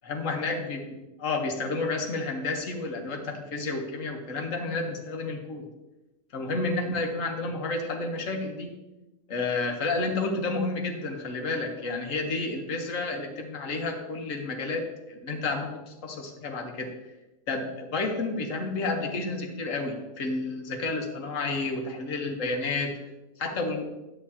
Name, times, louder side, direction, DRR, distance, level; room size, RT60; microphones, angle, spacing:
voice 1, 0.0-5.7 6.3-8.7 9.3-16.9 17.5-23.0 23.4-23.9, left 3 dB, 80° left, 3 dB, 1.5 m, -31 dB
11.0 x 8.5 x 2.8 m, 1.0 s
omnidirectional pair, 1.3 m